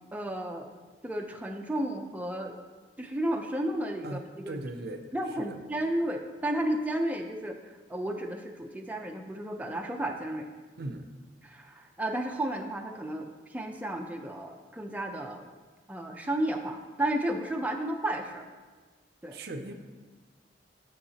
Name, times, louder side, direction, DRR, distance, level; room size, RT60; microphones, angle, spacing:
voice 1, 0.1-0.7 1.0-2.6 3.0-4.6 5.1-10.5 11.4-15.5 15.9-18.5 19.2-19.4, right 1 dB, 10° right, 2 dB, 0.4 m, -33 dB
voice 2, 4.0-5.1 5.4-5.6 10.8-11.1 19.3-19.7, right 2 dB, 60° right, 6 dB, 0.5 m, -38 dB
8.4 x 7.1 x 2.8 m, 1.4 s
head